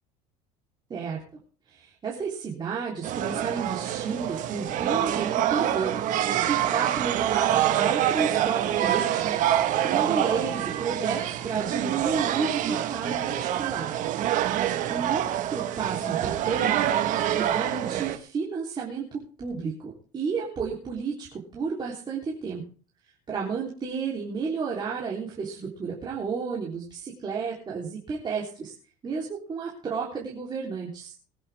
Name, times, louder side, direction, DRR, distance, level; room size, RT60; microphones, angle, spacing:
voice 1, 0.9-1.2 1.7-6.1 6.4-9.4 9.8-13.9 14.4-16.9 17.3-21.3 21.5-22.6 23.3-28.7 29.0-31.1, right 5 dB, 25° right, -4 dB, 3.5 m, -32 dB
sound 1, 3.0-18.2, right 11 dB, 55° right, 1.5 m, -26 dB
21.0 x 10.5 x 3.5 m, 0.40 s
cardioid pair, 135°, 16 cm